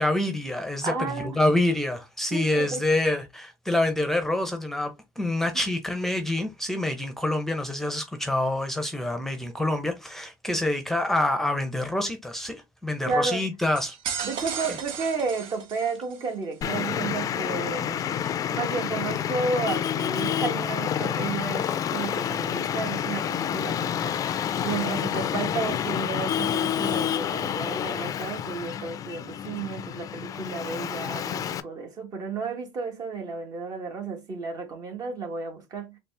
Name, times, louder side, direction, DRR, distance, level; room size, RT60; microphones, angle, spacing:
voice 1, 0.0-14.0, left 1 dB, 5° left, 0.7 m, -26 dB
voice 2, 0.8-1.4 2.3-2.8 13.0-13.4 14.2-18.2 18.5-36.0, right 4 dB, 45° right, 1.2 m, -32 dB
sound 1, 13.8-16.3, right 7 dB, 65° right, 0.7 m, -35 dB
Traffic noise roadway noise, 16.6-31.6, left 9 dB, 40° left, 0.4 m, -29 dB
4.0 x 2.1 x 3.3 m
supercardioid pair, 100°, 9 cm